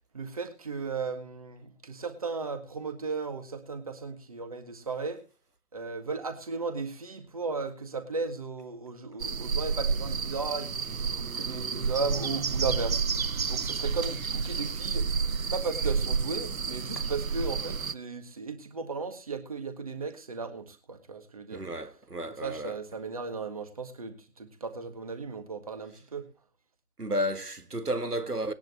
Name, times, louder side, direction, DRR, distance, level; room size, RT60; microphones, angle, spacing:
voice 1, 0.1-5.2 5.7-15.0 15.5-21.6 22.3-26.2, right 4 dB, 25° right, 1.7 m, -36 dB
sound 1, 9.2-17.9, right 5 dB, 65° right, 0.7 m, -30 dB
voice 2, 21.5-22.7 27.0-28.5, equal, 80° right, 1.8 m, -32 dB
20.0 x 10.5 x 2.9 m
figure-of-eight pair, 155°, 45 cm